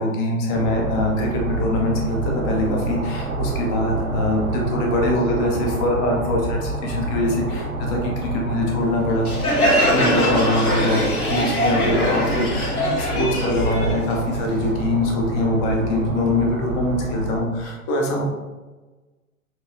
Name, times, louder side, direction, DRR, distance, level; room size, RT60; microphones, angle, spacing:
voice 1, 0.0-9.3 9.9-11.0 11.3-18.2, left 1 dB, 20° left, 0 dB, 0.4 m, -23 dB
sound 1, 0.5-17.4, right 2 dB, 70° right, 0.9 m, -28 dB
Crowd, 9.3-14.7, left 1 dB, 85° left, 1.3 m, -22 dB
6.1 x 2.7 x 2.5 m, 1.2 s
figure-of-eight pair, 105°, 44 cm